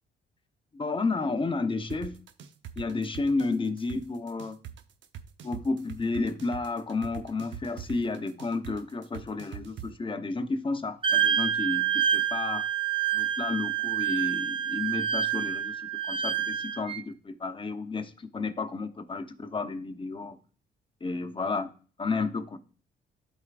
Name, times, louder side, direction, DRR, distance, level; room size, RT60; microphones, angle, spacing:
voice 1, 0.7-2.2 2.8-4.6 5.4-11.9 12.1-12.6 13.1-20.4 21.0-21.7 22.0-22.6, left 3 dB, 25° left, 0.9 m, -31 dB
sound 1, 1.9-9.9, right 10 dB, 70° right, 0.8 m, -42 dB
Wind instrument woodwind instrument, 11.0-17.0, right 9 dB, 25° right, 0.7 m, -27 dB
12.0 x 4.6 x 2.5 m
cardioid pair, 90°, 20 cm